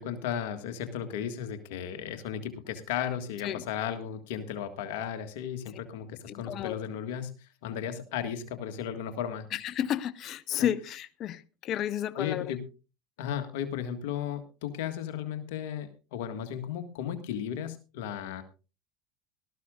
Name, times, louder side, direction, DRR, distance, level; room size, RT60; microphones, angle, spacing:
voice 1, 0.0-9.5 10.5-10.7 12.1-12.6 13.2-18.4, left 9 dB, 75° left, 1.7 m, -35 dB
voice 2, 6.5-6.8 9.5-12.4, left 10 dB, 50° left, 0.9 m, -32 dB
19.0 x 13.5 x 2.4 m
hypercardioid pair, 90°, 0 cm